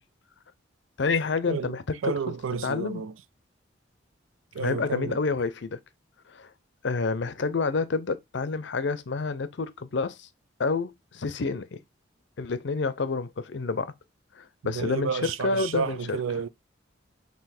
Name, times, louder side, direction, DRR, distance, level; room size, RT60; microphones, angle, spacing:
voice 1, 1.0-2.1 2.6-3.0 4.6-5.8 6.3-6.5 6.8-10.3 10.6-11.8 12.4-13.9 14.4-16.2, left 4 dB, 65° left, 0.5 m, -28 dB
voice 2, 2.0-3.1 4.5-5.2 14.6-16.5, right 6 dB, 85° right, 0.4 m, -31 dB
3.9 x 2.8 x 4.3 m
head